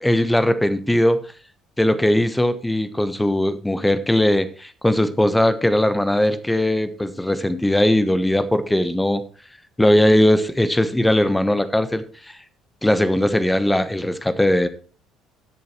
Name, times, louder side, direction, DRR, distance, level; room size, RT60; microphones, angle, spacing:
voice 1, 0.0-1.2 1.8-9.2 9.8-12.0 12.8-14.7, left 1 dB, 10° left, 13 dB, 1.1 m, -19 dB
17.0 x 6.8 x 3.2 m, 0.40 s
figure-of-eight pair, 55°, 0 cm